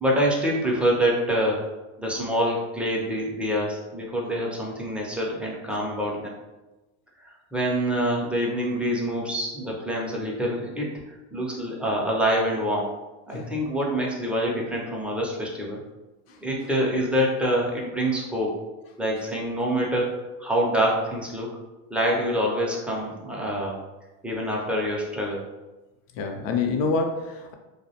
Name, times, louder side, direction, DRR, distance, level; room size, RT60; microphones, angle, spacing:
voice 1, 0.0-1.6 2.0-6.4 7.2-13.0 13.3-15.8 16.4-18.5 19.0-20.1 20.4-21.5 21.9-23.8 24.2-25.4, equal, 5° right, -3 dB, 0.3 m, -26 dB
voice 2, 26.2-27.5, left 4 dB, 85° left, 4 dB, 0.6 m, -27 dB
2.4 x 2.0 x 2.7 m, 1.1 s
supercardioid pair, 110°, 38 cm